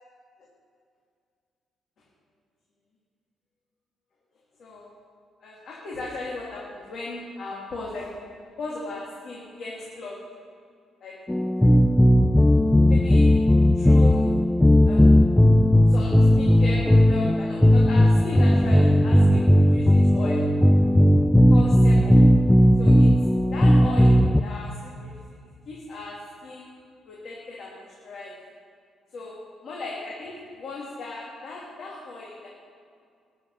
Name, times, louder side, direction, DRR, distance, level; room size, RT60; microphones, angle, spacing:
voice 1, 4.6-4.9 5.4-8.1 8.6-10.1 11.0-11.1 12.9-13.4 13.7-14.3 14.8-15.1 15.9-20.4 21.5-22.2 22.8-23.1 23.5-25.1 25.7-26.1 26.4-26.7 27.1-28.3 29.1-29.4 29.6-32.5, left 3 dB, 60° left, -5 dB, 2.8 m, -36 dB
sound 1, 11.3-24.4, equal, 10° left, 0.4 m, -17 dB
13.0 x 6.5 x 9.9 m, 2.2 s
cardioid pair, 100°, 0 cm